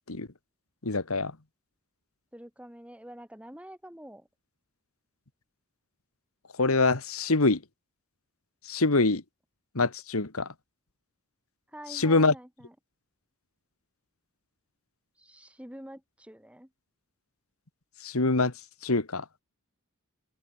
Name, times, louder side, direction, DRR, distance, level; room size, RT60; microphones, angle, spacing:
voice 1, 0.8-1.3 6.6-7.6 8.7-9.2 9.8-10.5 11.9-12.3 18.0-18.5 18.8-19.3, left 3 dB, 80° left, 1.8 m, -24 dB
voice 2, 2.3-4.3 11.7-12.8 15.2-16.7, right 1 dB, 5° right, 5.3 m, -46 dB
open air
head